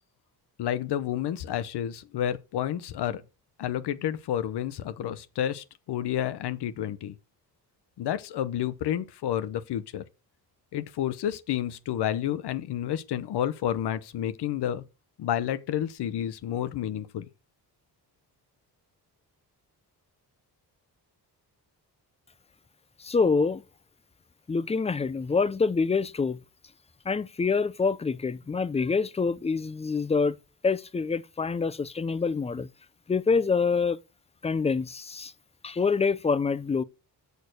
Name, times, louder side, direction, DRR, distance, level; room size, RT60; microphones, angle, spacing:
voice 1, 0.6-3.2 3.6-7.1 8.0-10.0 10.7-14.8 15.2-17.3, left 10 dB, 80° left, 0.8 m, -30 dB
voice 2, 23.0-23.6 24.5-26.4 27.1-30.3 30.6-32.7 33.1-34.0 34.4-35.3 35.6-36.8, left 4 dB, 15° left, 0.4 m, -26 dB
6.8 x 6.6 x 6.4 m
cardioid pair, 115°, 39 cm